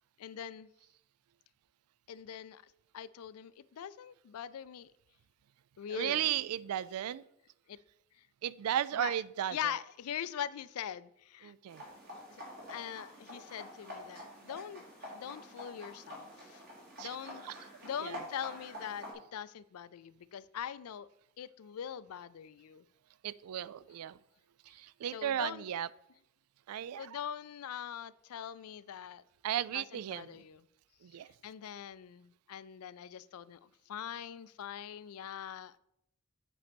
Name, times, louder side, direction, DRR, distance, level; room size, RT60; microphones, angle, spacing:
voice 1, 0.2-0.7 2.1-4.9 5.8-6.4 7.7-7.8 8.2-8.3 8.9-9.2 9.5-11.5 12.3-12.4 12.7-16.6 17.0-19.0 19.3-21.1 21.4-22.8 25.1-25.7 26.7-29.2 29.7-30.7 31.4-35.8, left 9 dB, 80° left, 17 dB, 0.4 m, -42 dB
voice 2, 5.9-7.2 8.4-9.6 11.4-11.8 17.0-17.2 17.5-17.6 18.0-18.2 23.2-24.2 24.7-25.9 26.7-27.1 29.4-30.4 31.0-31.3, right 10 dB, 80° right, 18 dB, 0.3 m, -35 dB
sound 1, 11.7-19.1, equal, 50° right, 2.9 m, -48 dB
8.4 x 4.2 x 5.2 m, 0.77 s
head